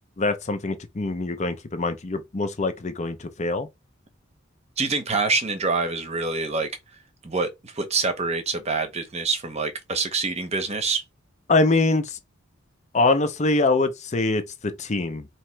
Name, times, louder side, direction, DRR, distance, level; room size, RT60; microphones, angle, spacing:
voice 1, 0.2-3.7 11.5-12.2 12.9-15.3, left 3 dB, 35° left, 0.5 m, -24 dB
voice 2, 4.8-6.7 7.2-11.0, right 3 dB, 30° right, 0.8 m, -26 dB
3.0 x 2.9 x 4.4 m
head